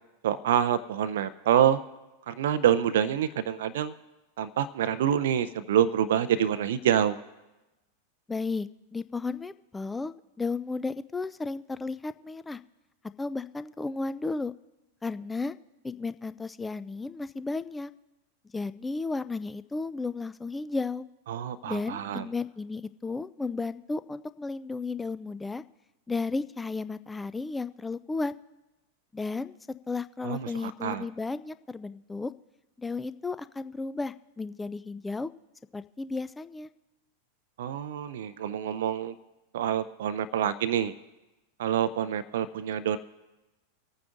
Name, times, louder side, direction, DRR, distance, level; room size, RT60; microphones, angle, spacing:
voice 1, 0.2-1.8 2.3-3.9 4.4-7.2 21.3-22.2 30.2-31.1 37.6-39.1 39.5-40.9 41.6-43.0, right 10 dB, 55° right, 13 dB, 0.5 m, -26 dB
voice 2, 8.3-12.6 13.2-14.5 15.0-15.6 15.8-17.9 18.5-21.1 21.6-25.6 26.1-28.3 29.1-29.6 29.9-32.3 32.8-35.3 35.7-36.7, left 3 dB, 10° left, 14 dB, 0.4 m, -33 dB
25.5 x 9.1 x 2.6 m, 1.0 s
figure-of-eight pair, 90°, 0 cm